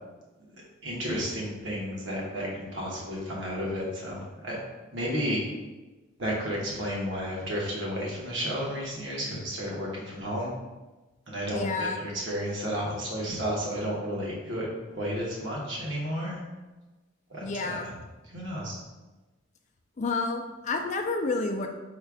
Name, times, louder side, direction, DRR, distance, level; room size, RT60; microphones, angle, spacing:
voice 1, 0.8-4.6 4.9-5.4 6.2-10.5 11.3-14.7 14.9-16.4 17.3-17.8 18.3-18.8, equal, 60° right, -4 dB, 1.2 m, -32 dB
voice 2, 11.5-12.1 17.4-17.9 20.0-21.7, left 3 dB, 35° left, 4 dB, 0.4 m, -30 dB
4.3 x 2.4 x 4.7 m, 1.2 s
head